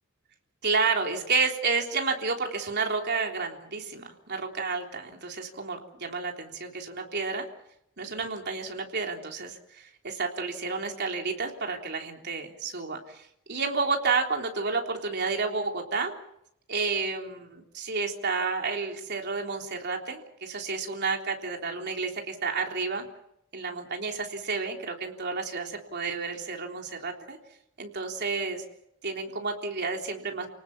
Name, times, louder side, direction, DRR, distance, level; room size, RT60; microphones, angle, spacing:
voice 1, 0.6-7.4 8.0-16.1 16.7-23.1 23.5-27.4 27.8-28.7 29.0-30.5, right 4 dB, 55° right, 2 dB, 3.7 m, -30 dB
29.5 x 19.0 x 7.2 m, 0.76 s
head